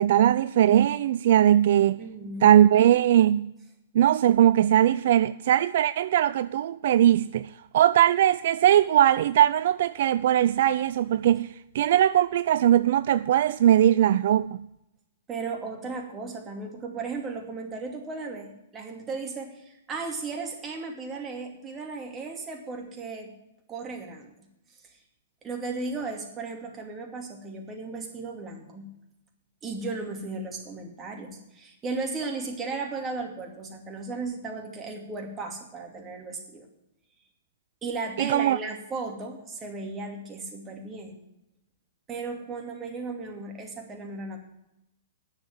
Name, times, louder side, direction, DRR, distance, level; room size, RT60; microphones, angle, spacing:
voice 1, 0.0-2.0 2.4-3.5 3.9-11.5 11.7-14.6 38.2-38.6, right 11 dB, 60° right, 0.3 m, -20 dB
voice 2, 2.0-2.4 15.3-23.3 23.7-24.3 24.8-25.0 25.4-28.9 29.6-36.7 37.8-41.2 42.1-44.4, right 3 dB, 20° right, 2.5 m, -35 dB
9.7 x 7.2 x 8.9 m
hypercardioid pair, 120°, 0 cm